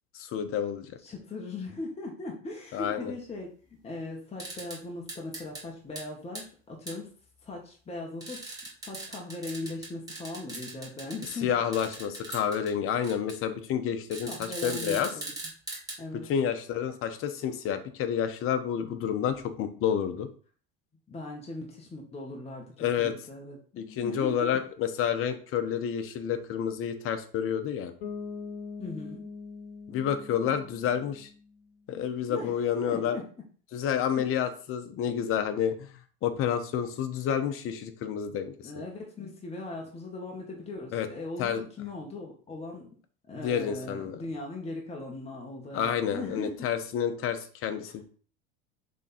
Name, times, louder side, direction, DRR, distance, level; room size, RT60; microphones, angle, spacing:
voice 1, 0.1-0.9 2.7-3.1 11.4-14.3 14.6-15.1 16.3-20.3 22.8-23.1 23.8-27.9 29.9-31.3 31.9-33.2 33.7-35.9 36.2-38.7 40.9-41.1 41.4-41.6 43.4-44.2 45.7-48.0, left 8 dB, 45° left, 8 dB, 1.1 m, -29 dB
voice 2, 1.0-3.5 3.8-7.1 7.4-8.4 8.8-11.5 14.2-15.3 16.0-16.3 21.1-24.6 28.8-29.2 32.3-33.3 34.2-34.4 38.6-42.9 43.3-46.5, left 2 dB, 20° left, -1 dB, 1.7 m, -39 dB
sound 1, 4.4-4.8 5.1-5.6 5.9-6.0 6.3-6.4 6.9-7.0 8.2-11.4 11.7-12.7 13.0-13.3 14.1-16.0, right 2 dB, 10° right, 2.7 m, -40 dB
Bass guitar, 28.0-31.7, left 5 dB, 75° left, 1.1 m, -42 dB
6.2 x 3.8 x 4.4 m, 0.42 s
hypercardioid pair, 95°, 29 cm